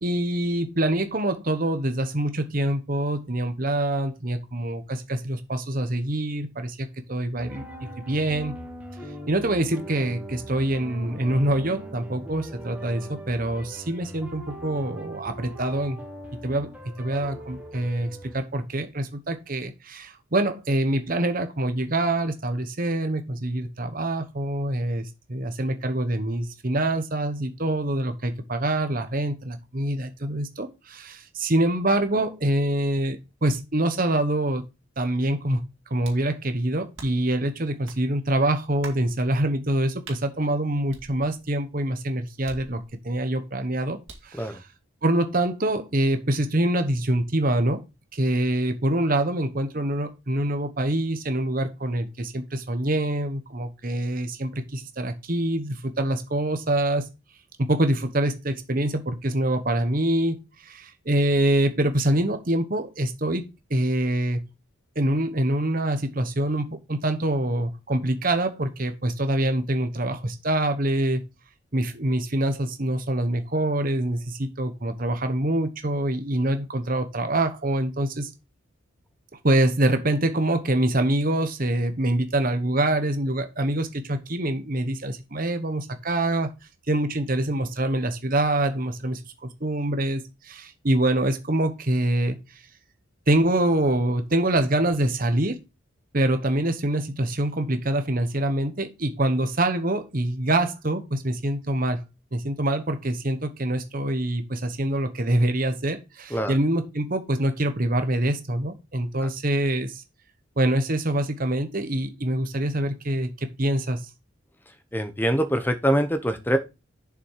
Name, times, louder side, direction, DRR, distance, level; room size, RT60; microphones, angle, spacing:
voice 1, 0.0-8.6 9.3-16.0 16.4-16.7 17.0-34.6 35.0-35.6 35.9-44.0 44.2-44.5 45.0-47.8 48.1-57.1 57.6-63.4 63.7-64.4 64.9-71.2 71.7-78.3 79.4-86.5 86.9-92.4 93.3-95.6 96.1-102.0 102.3-110.0 110.6-114.0, right 1 dB, 40° right, 8 dB, 1.1 m, -25 dB
sound 1, 7.4-18.4, right 1 dB, 5° right, 1.5 m, -40 dB
sound 2, 36.0-36.3 37.0-37.3 37.9-38.0 38.8-39.1 40.0-40.2 40.9-41.6 42.5-43.1 44.1-44.4, right 4 dB, 65° right, 2.3 m, -45 dB
voice 2, 114.9-116.6, equal, 10° left, 9 dB, 0.9 m, -24 dB
7.0 x 6.0 x 4.7 m, 0.26 s
head